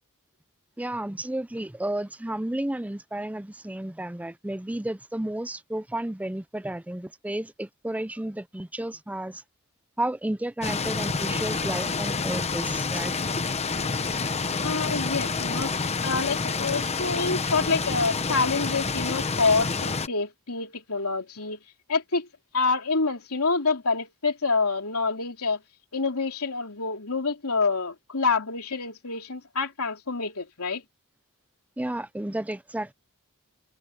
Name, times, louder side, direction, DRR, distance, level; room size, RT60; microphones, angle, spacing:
voice 1, 0.8-9.4 10.0-13.1 31.8-32.9, right 1 dB, 5° right, 0.5 m, -32 dB
sound 1, 10.6-20.1, left 4 dB, 30° left, 1.0 m, -28 dB
voice 2, 14.6-21.6 21.9-22.3 22.5-25.6 25.9-30.8, left 4 dB, 80° left, 3.2 m, -27 dB
head